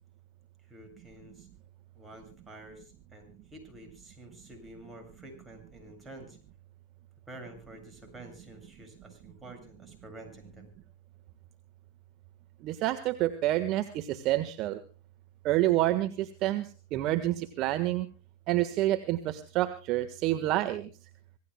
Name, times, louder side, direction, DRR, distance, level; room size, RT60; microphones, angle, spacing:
voice 1, 0.7-1.5 2.0-6.4 7.3-10.7, right 1 dB, 15° right, 4 dB, 7.5 m, -49 dB
voice 2, 12.6-14.8 15.4-18.1 18.5-20.9, right 15 dB, 45° right, 9 dB, 1.5 m, -28 dB
26.5 x 18.0 x 2.3 m, 0.35 s
hypercardioid pair, 100°, 0 cm